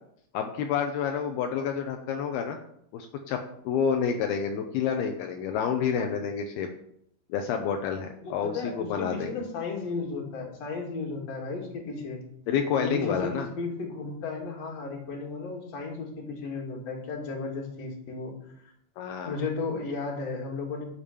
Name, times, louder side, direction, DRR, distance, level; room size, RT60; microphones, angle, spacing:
voice 1, 0.3-2.6 2.9-3.4 3.6-6.7 7.3-9.4 12.5-13.5 19.0-19.4, left 7 dB, 80° left, 4 dB, 2.8 m, -29 dB
voice 2, 8.2-12.2 12.8-18.4 19.2-20.9, left 4 dB, 45° left, 0 dB, 3.3 m, -34 dB
11.0 x 7.2 x 7.0 m, 0.73 s
omnidirectional pair, 4.6 m